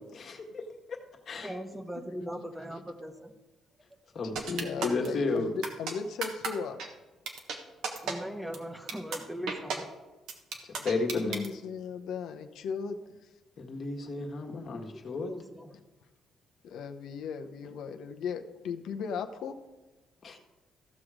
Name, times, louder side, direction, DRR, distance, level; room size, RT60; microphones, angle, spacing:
voice 1, 0.1-0.6 1.3-1.5 4.1-5.5 10.8-11.4 13.6-15.3 20.2-20.4, left 3 dB, 55° left, 3 dB, 1.6 m, -32 dB
voice 2, 1.4-3.3 8.0-9.9 15.0-15.7, equal, 10° right, 7 dB, 1.1 m, -40 dB
voice 3, 4.3-6.8 10.8-10.9 11.1-13.0 16.6-19.6, left 6 dB, 80° left, 6 dB, 0.8 m, -37 dB
sound 1, 4.4-5.1 5.6-5.9 6.2-6.5 6.8-6.9 7.3-7.6 7.8-8.1 8.5-8.6 8.9-9.2 9.5-9.8 10.3-11.5, right 5 dB, 85° right, 1.4 m, -33 dB
14.5 x 6.2 x 5.0 m, 1.1 s
cardioid pair, 90°, 0 cm